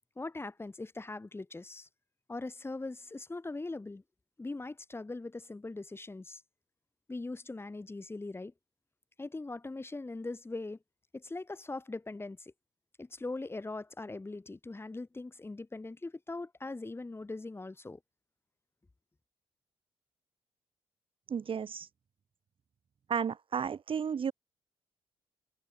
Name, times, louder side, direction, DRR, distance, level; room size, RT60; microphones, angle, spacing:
voice 1, 0.2-1.9 2.3-4.0 4.4-6.4 7.1-8.5 9.2-10.8 11.1-12.5 13.0-18.0, left 2 dB, 20° left, 1.4 m, -41 dB
voice 2, 21.3-21.9 23.1-24.3, right 7 dB, 45° right, 1.8 m, -33 dB
figure-of-eight pair, 40°, 13 cm